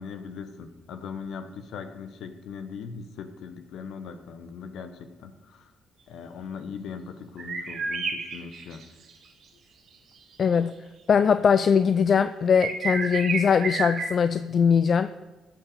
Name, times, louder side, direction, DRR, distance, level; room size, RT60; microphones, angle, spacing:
voice 1, 0.0-5.7 6.1-8.8, left 6 dB, 65° left, 8 dB, 1.1 m, -39 dB
sound 1, 7.4-9.1 10.4-10.5 12.6-14.1, right 4 dB, 65° right, 1.9 m, -30 dB
voice 2, 10.4-10.7 11.1-15.1, left 6 dB, 50° left, 12 dB, 0.4 m, -21 dB
15.0 x 6.2 x 6.6 m, 1.2 s
hypercardioid pair, 50°, 0 cm